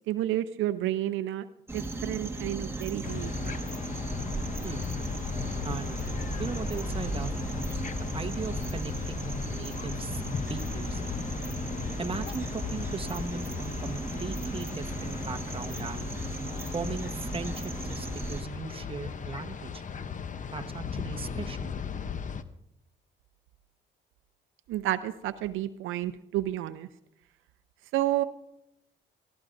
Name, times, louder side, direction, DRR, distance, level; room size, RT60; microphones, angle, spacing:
voice 1, 0.1-1.5 1.7-3.6 24.7-26.9 27.9-28.2, right 13 dB, 85° right, 11 dB, 0.6 m, -30 dB
sound 1, 1.7-18.4, right 2 dB, 10° right, 1.6 m, -36 dB
sound 2, 3.0-22.4, left 6 dB, 40° left, 0.8 m, -37 dB
voice 2, 5.6-6.0 6.4-7.8 8.1-10.2 10.5-11.0 12.0-16.1 16.7-19.8 20.5-21.7, right 4 dB, 25° right, 7 dB, 1.2 m, -38 dB
22.5 x 14.5 x 2.6 m, 0.81 s
cardioid pair, 90°, 20 cm